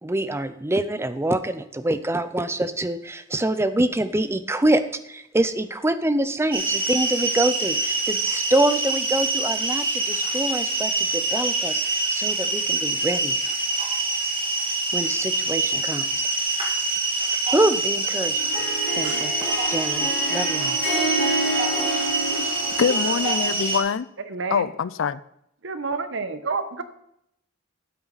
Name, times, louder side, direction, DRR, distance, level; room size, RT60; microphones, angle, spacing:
voice 1, 0.0-13.4 14.9-16.3 17.2-18.5 18.9-19.3 19.7-20.8, right 1 dB, 15° right, 0.6 m, -25 dB
sound 1, 6.5-23.8, right 3 dB, 30° right, 2.4 m, -25 dB
Harp, 18.4-23.7, right 1 dB, 65° left, 4.2 m, -29 dB
voice 2, 22.8-24.1 24.5-25.2, left 6 dB, 85° left, 0.4 m, -24 dB
voice 3, 24.3-24.7 25.6-26.8, right 4 dB, 70° right, 1.0 m, -29 dB
12.5 x 8.9 x 4.1 m
head